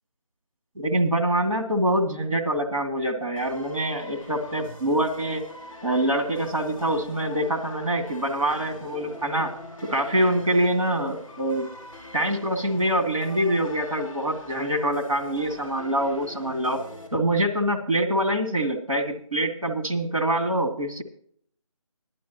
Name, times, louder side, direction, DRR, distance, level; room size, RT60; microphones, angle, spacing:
voice 1, 0.8-5.4 5.8-9.5 9.8-11.7 12.1-16.8 17.1-21.0, right 1 dB, 90° right, 4 dB, 2.5 m, -25 dB
sound 1, 3.4-17.1, left 2 dB, 10° right, 2.4 m, -43 dB
17.0 x 11.5 x 3.0 m, 0.62 s
figure-of-eight pair, 180°, 17 cm